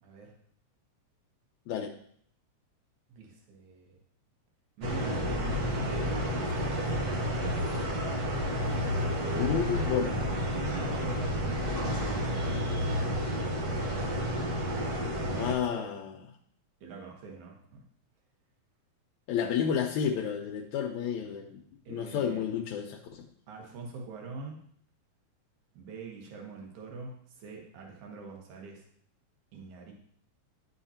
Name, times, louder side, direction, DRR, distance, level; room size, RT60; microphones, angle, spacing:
voice 1, 0.0-0.3 3.1-4.0 4.8-7.4 8.5-9.3 10.5-13.5 14.7-15.8 16.8-17.9 21.9-22.4 23.5-24.6 25.7-28.8 29.5-29.9, right 3 dB, 80° right, 0 dB, 2.7 m, -44 dB
sound 1, 4.8-15.5, equal, 65° right, 0.9 m, -30 dB
voice 2, 9.3-10.1 15.4-16.1 19.3-21.6 21.9-23.2, left 8 dB, 80° left, 1 dB, 2.0 m, -31 dB
11.0 x 5.5 x 2.8 m, 0.63 s
omnidirectional pair, 3.4 m